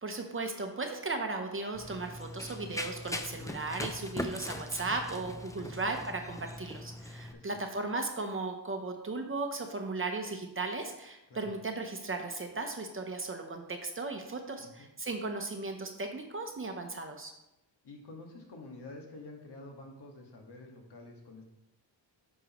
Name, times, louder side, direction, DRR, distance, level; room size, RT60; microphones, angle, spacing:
voice 1, 0.0-17.3, right 3 dB, 30° right, 4 dB, 0.8 m, -36 dB
Run, 1.7-7.3, left 1 dB, 10° left, 0.5 m, -40 dB
voice 2, 7.3-7.6 11.3-11.5 14.6-14.9 17.8-21.5, left 2 dB, 65° left, 1 dB, 1.8 m, -49 dB
9.9 x 6.5 x 3.0 m, 0.91 s
wide cardioid pair, 145°, 44 cm